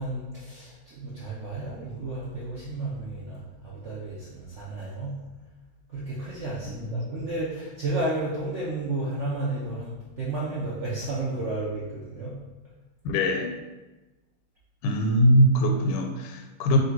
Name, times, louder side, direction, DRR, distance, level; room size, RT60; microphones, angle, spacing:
voice 1, 0.0-5.1 5.9-12.3, right 2 dB, 85° right, -7 dB, 0.6 m, -32 dB
voice 2, 6.7-7.1 13.0-13.6 14.8-16.8, equal, 85° left, 4 dB, 1.4 m, -22 dB
3.2 x 2.6 x 4.5 m, 1.1 s
omnidirectional pair, 2.2 m